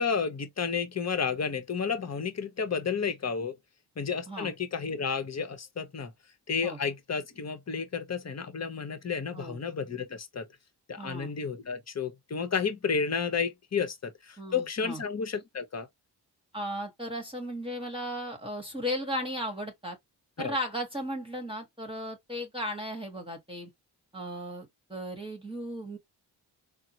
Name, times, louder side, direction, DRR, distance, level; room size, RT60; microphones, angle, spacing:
voice 1, 0.0-3.5 4.0-6.1 6.5-10.5 10.9-15.9 20.4-20.5, left 6 dB, 35° left, 0.9 m, -31 dB
voice 2, 11.0-11.3 14.4-15.0 16.5-20.0 20.4-23.7 24.1-26.0, equal, 10° right, 1.2 m, -36 dB
3.6 x 2.0 x 2.8 m
cardioid pair, 60°, 43 cm